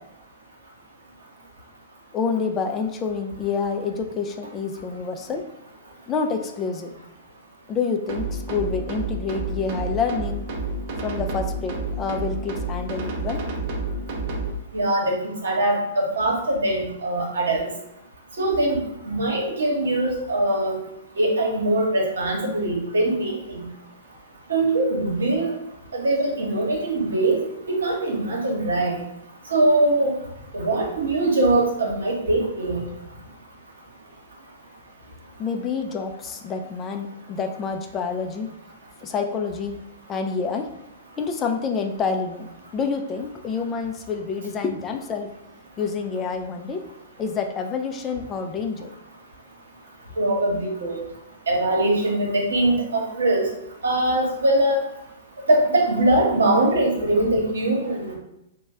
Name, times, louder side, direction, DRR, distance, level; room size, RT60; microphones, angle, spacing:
voice 1, 2.1-5.4 6.1-6.9 7.7-10.4 11.0-13.4 35.4-38.5 39.0-39.8 40.1-40.7 41.2-45.3 45.8-46.8 47.2-48.9, left 5 dB, 25° left, 4 dB, 0.4 m, -28 dB
sound 1, 8.1-14.5, right 2 dB, 50° right, 0.6 m, -29 dB
voice 2, 14.7-17.7 18.4-20.8 21.2-23.6 24.5-25.5 25.9-27.4 27.7-29.0 29.5-30.2 30.5-32.9 50.2-51.0 51.5-53.5 53.8-54.8 55.5-58.1, right 1 dB, 75° right, -1 dB, 1.0 m, -22 dB
3.0 x 2.2 x 3.6 m, 0.84 s
figure-of-eight pair, 110°, 0 cm